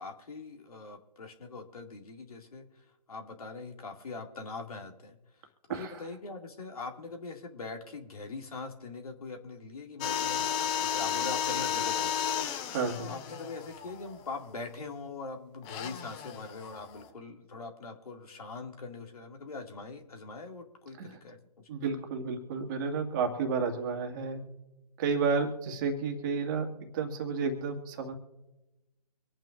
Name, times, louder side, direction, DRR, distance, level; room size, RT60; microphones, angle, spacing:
voice 1, 0.0-2.7 3.1-5.2 5.7-12.3 13.0-21.7, left 3 dB, 60° left, 2 dB, 2.4 m, -42 dB
sound 1, 10.0-14.6 15.6-17.1, left 8 dB, 10° left, 0.4 m, -33 dB
voice 2, 12.7-13.1 21.0-21.1 21.7-24.4 25.0-26.7 26.9-28.1, right 5 dB, 30° right, 4 dB, 2.0 m, -31 dB
25.0 x 9.0 x 2.5 m, 1.0 s
figure-of-eight pair, 140°, 21 cm